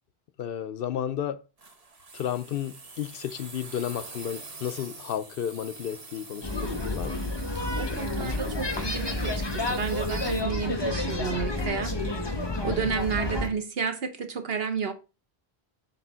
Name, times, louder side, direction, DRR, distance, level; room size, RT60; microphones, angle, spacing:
voice 1, 0.4-1.4 2.1-7.2 8.0-8.6 12.6-12.9, left 9 dB, 65° left, 0.7 m, -33 dB
sound 1, 1.6-10.4, right 3 dB, 40° right, 1.1 m, -46 dB
sound 2, 6.4-13.5, left 2 dB, 25° left, 1.1 m, -30 dB
voice 2, 7.8-11.9 12.6-14.9, right 6 dB, 70° right, 1.3 m, -31 dB
8.1 x 3.4 x 6.1 m
omnidirectional pair, 1.1 m